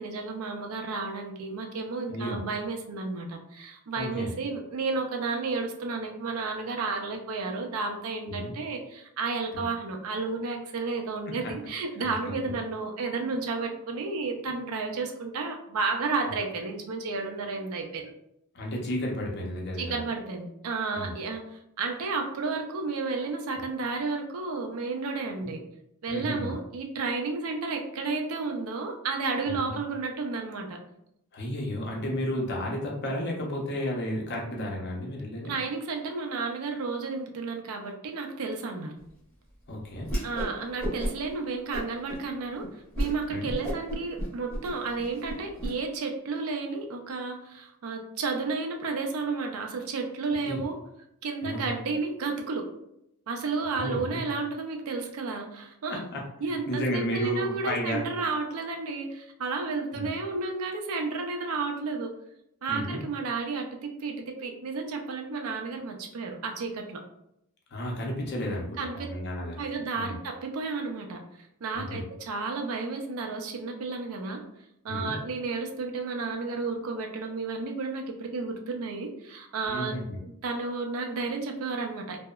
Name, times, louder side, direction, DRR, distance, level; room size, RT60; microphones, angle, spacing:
voice 1, 0.0-18.1 19.8-25.6 26.0-30.8 35.4-38.9 40.2-42.7 43.0-50.8 51.2-52.7 53.3-56.0 56.4-62.1 62.6-67.0 68.8-69.1 69.4-74.4 74.8-80.0 80.2-82.2, right 4 dB, 75° right, 3 dB, 0.4 m, -32 dB
voice 2, 2.1-2.4 4.0-4.3 8.3-8.5 9.5-9.6 11.4-11.5 12.0-12.1 12.4-12.5 18.5-20.0 20.9-21.1 26.1-26.5 29.5-29.6 31.3-35.5 39.7-40.1 43.3-43.5 50.5-50.6 51.4-51.7 53.7-54.2 55.9-56.2 56.7-58.0 59.9-60.1 62.7-63.0 67.7-69.6 69.9-70.2 71.7-72.0 74.9-75.2 79.7-80.2, equal, 50° left, -1 dB, 0.6 m, -32 dB
Whoosh swoosh swish, 40.0-40.5 40.8-41.3 41.7-42.2 42.6-42.7 42.9-43.1 43.5-45.7, equal, 10° left, 0.7 m, -32 dB
2.8 x 2.0 x 2.2 m, 0.80 s
head